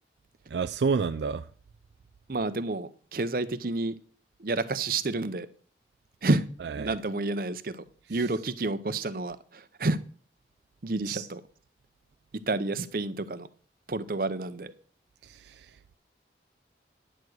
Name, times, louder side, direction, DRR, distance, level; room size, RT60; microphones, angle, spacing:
voice 1, 0.5-1.5 6.8-6.9 11.1-11.3 15.2-15.7, right 5 dB, 80° right, 0.4 m, -29 dB
voice 2, 2.3-4.0 4.4-5.5 6.2-6.5 6.8-7.8 8.1-10.0 10.8-11.4 12.5-13.5 13.9-14.7, right 2 dB, 55° right, 0.7 m, -29 dB
10.0 x 4.8 x 8.0 m
head